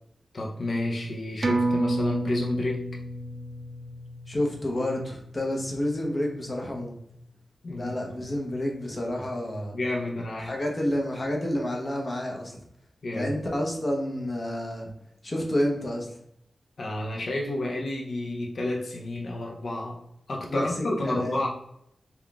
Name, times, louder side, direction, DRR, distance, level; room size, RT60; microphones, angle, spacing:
voice 1, 0.3-2.9 7.6-7.9 8.2-8.3 9.7-10.5 13.0-13.3 16.8-20.0 20.3-21.5, left 1 dB, 55° left, 0 dB, 0.5 m, -30 dB
sound 1, 1.4-6.4 6.7-6.8, right 2 dB, 35° right, 0.4 m, -31 dB
voice 2, 4.3-7.0 7.8-9.7 10.4-12.5 13.1-14.9 15.2-16.1 20.5-20.7 21.1-21.5, left 1 dB, 30° left, 0 dB, 0.8 m, -29 dB
3.7 x 2.3 x 3.4 m, 0.74 s
wide cardioid pair, 120°, 0 cm